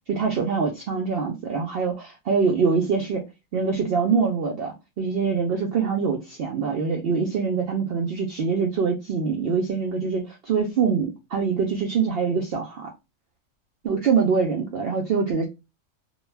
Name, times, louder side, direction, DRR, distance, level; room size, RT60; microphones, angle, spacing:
voice 1, 0.1-3.2 3.5-12.9 13.8-15.5, right 5 dB, 65° right, 0.6 m, -24 dB
2.2 x 2.2 x 3.1 m
omnidirectional pair, 1.4 m